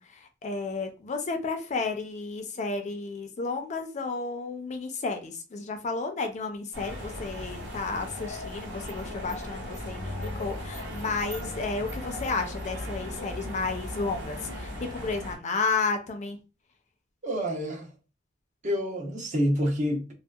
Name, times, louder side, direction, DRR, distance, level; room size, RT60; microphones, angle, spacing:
voice 1, 0.0-16.4, left 4 dB, 40° left, 0.4 m, -32 dB
sound 1, 6.7-15.4, left 1 dB, 80° right, 1.4 m, -37 dB
voice 2, 17.2-17.9 18.6-20.1, equal, 40° right, 0.7 m, -28 dB
2.6 x 2.1 x 2.3 m
head